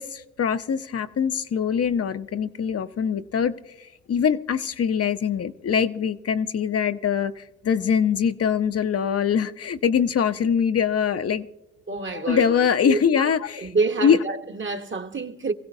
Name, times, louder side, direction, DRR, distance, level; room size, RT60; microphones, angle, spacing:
voice 1, 0.0-11.5 12.1-13.7 14.0-14.2, left 7 dB, 55° left, 0.6 m, -23 dB
voice 2, 11.9-12.4 12.8-13.3 13.6-15.5, right 4 dB, 40° right, 1.1 m, -27 dB
24.0 x 16.0 x 2.6 m
cardioid pair, 55°, 29 cm